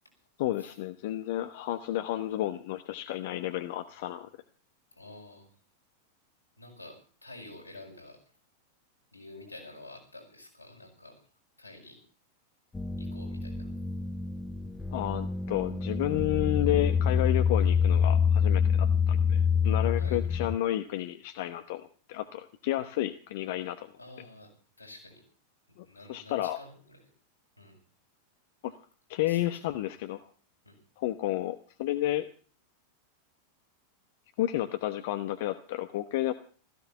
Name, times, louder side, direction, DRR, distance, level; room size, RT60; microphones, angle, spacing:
voice 1, 0.4-4.3 14.9-23.9 25.8-26.6 28.6-28.7 29.1-30.2 31.0-32.3 34.4-36.3, left 14 dB, 50° left, 9 dB, 1.0 m, -31 dB
voice 2, 4.9-5.5 6.6-8.2 9.1-11.2 11.6-12.0 13.0-13.7 20.0-20.2 24.0-25.2 25.8-27.1 27.6-27.8 29.2-29.9 30.6-30.8, left 2 dB, 85° left, 0 dB, 6.5 m, -49 dB
sound 1, 12.7-20.6, left 6 dB, 10° left, 1.0 m, -26 dB
16.5 x 15.0 x 5.7 m, 0.42 s
figure-of-eight pair, 90°, 0 cm